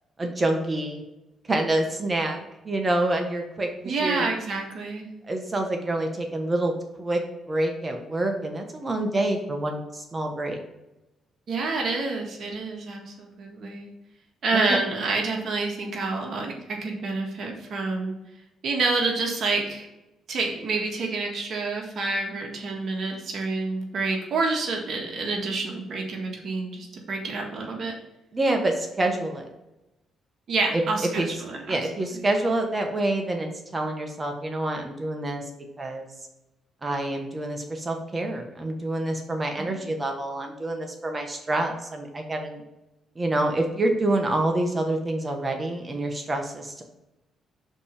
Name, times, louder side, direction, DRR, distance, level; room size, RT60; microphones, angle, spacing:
voice 1, 0.2-1.0 1.5-4.3 5.3-7.2 7.5-10.6 14.5-14.8 28.3-29.5 30.7-30.8 31.1-31.3 31.7-35.4 35.8-36.1 36.8-42.6 43.1-46.8, right 1 dB, 25° right, 3 dB, 1.4 m, -27 dB
voice 2, 3.8-5.1 11.5-13.9 14.4-18.1 18.6-19.9 20.3-27.9 30.5-31.8 32.1-32.2 39.6-39.9, right 3 dB, 60° right, 1 dB, 1.6 m, -28 dB
5.3 x 4.3 x 5.1 m, 0.94 s
cardioid pair, 90°, 0 cm